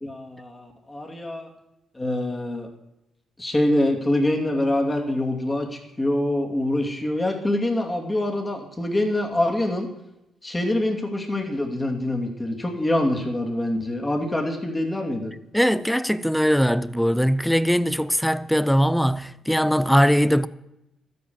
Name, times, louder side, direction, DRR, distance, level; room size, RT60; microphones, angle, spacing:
voice 1, 0.0-1.5 1.9-2.7 3.4-9.9 10.4-15.3, left 1 dB, 15° left, 2.6 m, -25 dB
voice 2, 15.5-20.5, equal, ahead, 0.6 m, -20 dB
12.5 x 9.5 x 7.1 m
cardioid pair, 90°, 0 cm